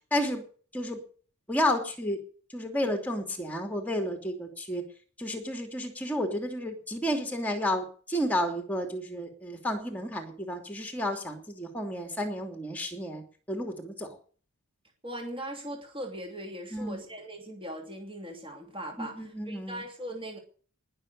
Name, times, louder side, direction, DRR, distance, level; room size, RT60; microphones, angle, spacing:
voice 1, 0.1-0.4 0.7-1.0 1.5-2.2 2.5-4.8 5.2-14.2 16.7-17.0 19.0-19.8, equal, 5° left, 4 dB, 3.0 m, -31 dB
voice 2, 15.0-20.4, right 1 dB, 25° right, 2 dB, 3.0 m, -39 dB
20.0 x 6.8 x 8.3 m, 0.43 s
head